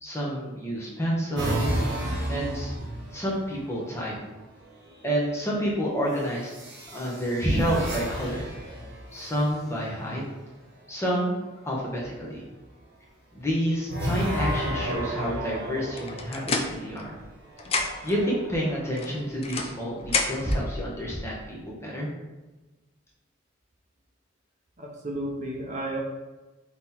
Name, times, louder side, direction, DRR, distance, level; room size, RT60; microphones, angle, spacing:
voice 1, 0.0-1.7 2.3-2.7 3.1-4.1 5.0-6.5 6.9-8.5 9.1-10.2 10.9-12.4 13.3-17.1 18.0-21.6 21.8-22.1, equal, 15° left, -4 dB, 0.8 m, -28 dB
sound 1, 1.4-3.6 4.9-5.4 6.5-9.9 13.8-16.8 17.5-19.4, right 1 dB, 60° right, 1.1 m, -33 dB
sound 2, 16.0-17.3 17.6-18.2 19.0-20.6, left 4 dB, 30° left, 0.4 m, -30 dB
voice 2, 24.8-26.0, right 1 dB, 35° right, -1 dB, 0.6 m, -32 dB
3.8 x 3.0 x 4.1 m, 1.1 s
head